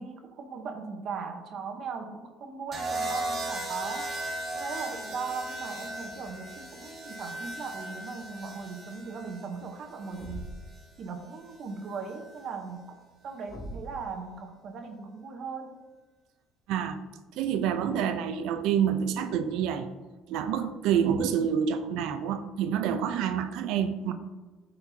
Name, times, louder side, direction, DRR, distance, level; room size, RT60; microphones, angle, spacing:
voice 1, 0.0-4.1 4.5-10.5 11.0-15.8, right 5 dB, 50° right, 4 dB, 0.9 m, -38 dB
sound 1, 2.7-10.8 12.1-12.4, right 1 dB, 30° right, 1.2 m, -37 dB
Thump thud, 10.1-10.8 13.5-14.0, equal, 25° left, 2.0 m, -40 dB
voice 2, 17.4-19.9 20.3-24.1, right 8 dB, 75° right, 9 dB, 0.6 m, -27 dB
12.5 x 4.3 x 2.8 m, 1.3 s
cardioid pair, 120°, 0 cm